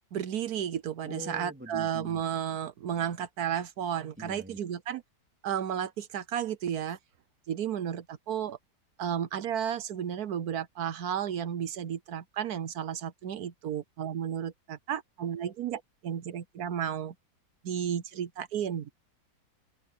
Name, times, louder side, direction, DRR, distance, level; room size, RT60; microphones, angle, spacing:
voice 1, 0.1-5.0 5.4-7.0 7.5-8.6 9.0-17.1 17.6-18.9, right 9 dB, 65° right, 1.2 m, -33 dB
voice 2, 1.0-2.2 4.2-4.6, right 1 dB, 5° right, 2.7 m, -43 dB
open air
omnidirectional pair, 1.9 m